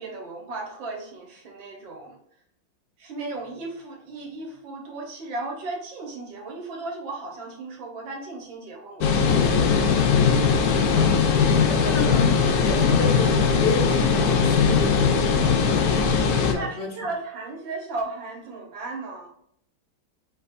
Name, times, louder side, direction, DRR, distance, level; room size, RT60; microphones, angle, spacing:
voice 1, 0.0-2.2 3.0-10.0 10.4-11.1 16.5-19.3, right 3 dB, 75° right, 1 dB, 2.0 m, -36 dB
sound 1, 9.0-16.5, left 6 dB, 65° left, 1.0 m, -20 dB
voice 2, 11.5-13.3 13.6-15.7 16.2-16.9, left 3 dB, 40° left, 1 dB, 0.8 m, -31 dB
4.7 x 4.1 x 2.6 m, 0.68 s
omnidirectional pair, 2.1 m